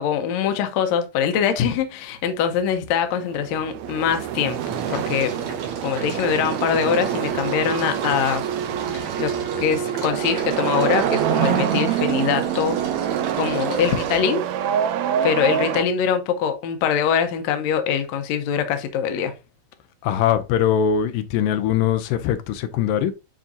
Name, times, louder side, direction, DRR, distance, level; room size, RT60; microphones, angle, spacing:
voice 1, 0.0-5.3 5.8-8.4 8.9-9.3 9.6-12.8 13.3-14.4 15.2-19.3, left 8 dB, 70° left, 1.9 m, -23 dB
sound 1, 2.1-2.7 3.1-14.2, right 3 dB, 60° right, 3.1 m, -36 dB
sound 2, 3.2-15.8, right 10 dB, 80° right, 1.6 m, -25 dB
voice 2, 20.0-23.1, left 9 dB, 85° left, 2.3 m, -21 dB
10.0 x 3.7 x 2.7 m
omnidirectional pair, 3.9 m